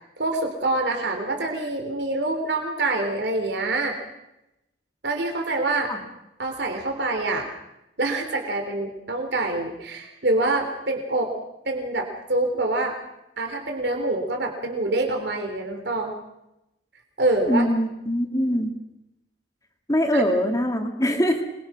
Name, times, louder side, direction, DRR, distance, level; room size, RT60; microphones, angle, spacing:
voice 1, 0.2-4.0 5.0-5.9 6.4-7.5 8.0-11.3 11.7-13.0 13.4-16.1 17.2-17.6 20.1-20.2, right 2 dB, 65° right, 3 dB, 3.5 m, -25 dB
voice 2, 17.5-18.7 19.9-21.4, equal, 20° left, 3 dB, 2.5 m, -23 dB
26.0 x 22.0 x 6.2 m, 0.90 s
head